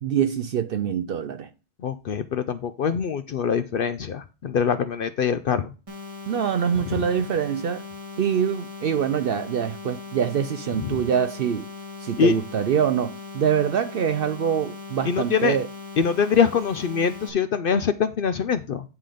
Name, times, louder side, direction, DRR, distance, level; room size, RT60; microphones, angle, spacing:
voice 1, 0.0-1.5 6.3-7.8 8.2-11.7 12.0-15.7, right 8 dB, 60° right, 0.6 m, -24 dB
voice 2, 1.8-5.7 10.9-11.0 12.2-12.3 15.1-15.6 16.0-18.8, left 6 dB, 60° left, 0.6 m, -23 dB
sound 1, 5.9-17.3, left 3 dB, 25° right, 2.1 m, -39 dB
9.7 x 3.8 x 5.0 m
omnidirectional pair, 1.3 m